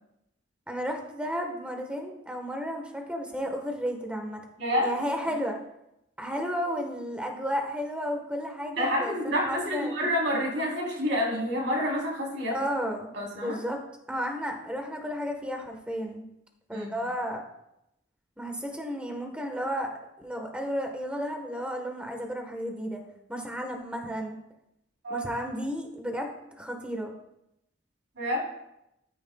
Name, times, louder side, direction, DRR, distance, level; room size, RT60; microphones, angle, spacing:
voice 1, 0.7-4.4 4.8-5.6 6.2-10.0 12.5-13.8 14.1-16.2 16.7-17.4 18.4-19.9 20.2-23.0 23.3-24.4 25.1-26.3 26.6-27.1, equal, 5° right, 3 dB, 1.4 m, -33 dB
voice 2, 4.6-4.9 8.8-12.6 13.1-13.6 16.7-16.9 25.0-25.3 28.2-28.4, equal, 90° right, -2 dB, 3.8 m, -28 dB
13.5 x 9.5 x 2.4 m, 0.85 s
head